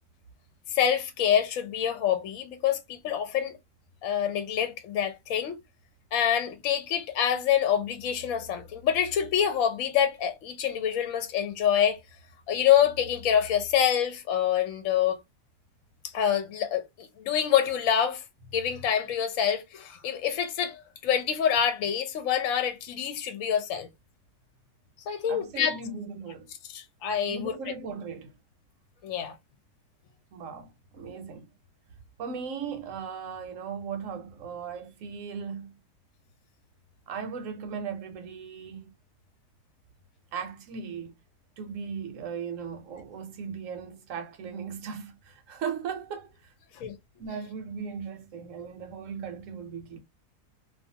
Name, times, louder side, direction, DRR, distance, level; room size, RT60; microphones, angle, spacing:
voice 1, 0.7-3.5 4.0-5.6 6.1-12.0 12.5-15.2 16.1-18.2 18.5-23.9 25.1-25.8 26.7-27.5 29.0-29.4 46.8-46.9, left 9 dB, 65° left, 0.9 m, -26 dB
voice 2, 25.3-26.5 27.2-28.3 30.3-31.5 32.2-35.7 37.1-38.9 40.3-41.1 41.6-46.5 47.2-50.0, right 6 dB, 65° right, 0.9 m, -37 dB
2.5 x 2.3 x 2.7 m
omnidirectional pair, 1.7 m